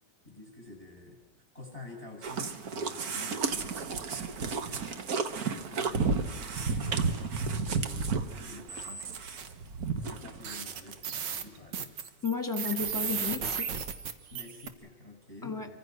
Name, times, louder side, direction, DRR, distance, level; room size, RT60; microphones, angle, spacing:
voice 1, 0.2-1.2 1.5-5.0 5.5-7.0 7.6-9.2 10.0-12.0 14.3-15.8, left 2 dB, 30° right, 2 dB, 7.3 m, -49 dB
sound 1, 2.2-10.5 10.9-11.0 11.5-11.6 11.7-11.8, right 4 dB, 60° right, 1.6 m, -32 dB
sound 2, 8.7-9.5 10.1-10.2 10.4-14.7, right 7 dB, 85° right, 1.9 m, -35 dB
voice 2, 12.2-13.8 15.4-15.7, left 5 dB, 10° left, 6 dB, 1.8 m, -33 dB
28.0 x 24.5 x 6.2 m, 1.1 s
omnidirectional pair, 1.9 m